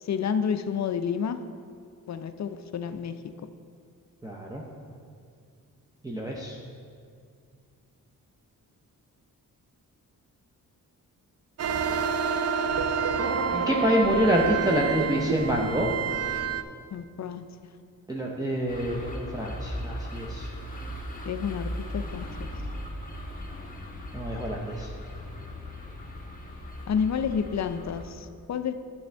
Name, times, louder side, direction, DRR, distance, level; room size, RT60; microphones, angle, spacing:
voice 1, 0.0-1.4 2.1-3.1 16.9-17.5 21.3-22.3 26.9-28.7, left 7 dB, 50° left, 10 dB, 0.5 m, -29 dB
voice 2, 4.2-4.6 6.0-6.6 13.5-15.9 18.1-20.5 24.1-24.9, equal, 10° right, -3 dB, 0.7 m, -27 dB
sound 1, 11.6-16.6, right 6 dB, 45° right, 0.4 m, -28 dB
sound 2, 18.7-28.0, left 1 dB, 25° left, 1.1 m, -38 dB
9.3 x 6.9 x 3.4 m, 2.3 s
cardioid pair, 75°, 35 cm